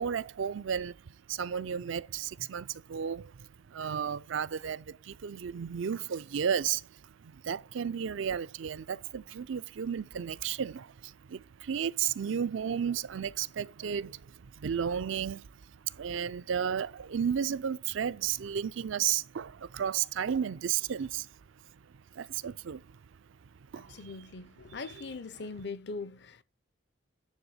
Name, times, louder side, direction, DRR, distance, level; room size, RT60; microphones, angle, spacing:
voice 1, 0.0-21.3 21.7-23.0 23.7-25.5, right 8 dB, 75° right, 0.4 m, -34 dB
voice 2, 23.8-26.4, left 4 dB, 55° left, 0.6 m, -41 dB
10.0 x 3.4 x 5.5 m
head